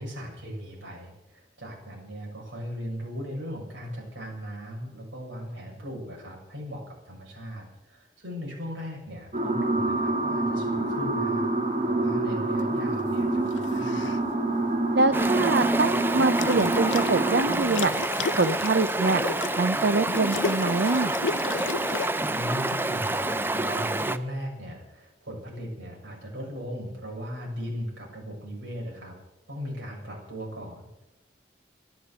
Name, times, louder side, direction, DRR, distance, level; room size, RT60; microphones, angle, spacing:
voice 1, 0.0-11.5 11.8-14.1 22.3-29.2 29.5-31.0, equal, 85° right, -1 dB, 6.8 m, -38 dB
sound 1, 9.3-17.6, right 2 dB, 35° right, 2.3 m, -26 dB
sound 2, 13.5-14.2 16.1-17.1 17.5-22.1, left 5 dB, 90° left, 0.5 m, -34 dB
voice 2, 14.9-17.9 18.4-19.2 19.6-21.1, right 3 dB, 65° right, 11 dB, 0.6 m, -24 dB
Stream, 15.1-24.2, right 2 dB, 10° right, 0.5 m, -28 dB
13.5 x 11.5 x 8.2 m, 0.92 s
head